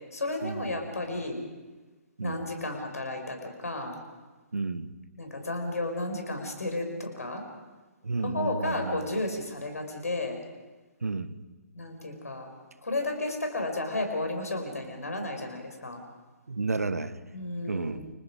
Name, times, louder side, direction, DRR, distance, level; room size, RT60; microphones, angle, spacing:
voice 1, 0.1-1.4 2.2-4.0 5.2-7.4 8.2-10.4 11.7-12.5 12.8-16.0 17.3-18.1, left 2 dB, 75° left, 4 dB, 5.7 m, -33 dB
voice 2, 4.5-4.9 8.0-9.0 11.0-11.4 16.5-17.1 17.7-18.0, right 3 dB, 75° right, 13 dB, 1.4 m, -31 dB
30.0 x 22.0 x 5.0 m, 1.2 s
figure-of-eight pair, 130°, 8 cm